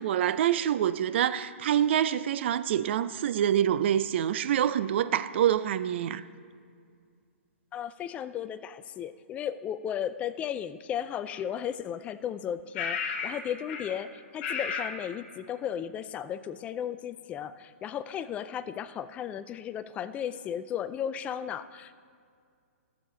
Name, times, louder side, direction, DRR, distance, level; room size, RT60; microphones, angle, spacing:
voice 1, 0.0-6.2, right 10 dB, 55° right, 0.4 m, -26 dB
voice 2, 7.7-21.9, left 9 dB, 20° left, 0.3 m, -35 dB
sound 1, 11.3-11.4 12.7-13.4 13.7-14.0 14.4-15.0, left 6 dB, 40° left, 1.3 m, -33 dB
14.0 x 7.3 x 3.8 m
hypercardioid pair, 135°, 7 cm